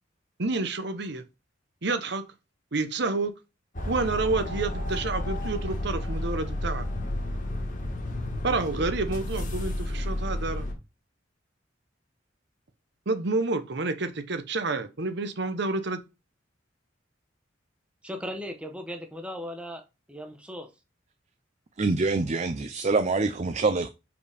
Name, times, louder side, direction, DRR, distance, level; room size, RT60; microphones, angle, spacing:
voice 1, 0.4-1.2 1.8-2.2 2.7-3.3 3.9-6.8 8.4-10.7 13.1-16.0, right 3 dB, 60° right, 0.9 m, -29 dB
sound 1, 3.7-10.7, left 1 dB, 45° left, 1.5 m, -31 dB
voice 2, 18.0-19.8 20.1-20.7, equal, 5° right, 1.0 m, -37 dB
voice 3, 21.8-23.9, right 3 dB, 40° right, 0.5 m, -25 dB
5.1 x 5.0 x 5.0 m
head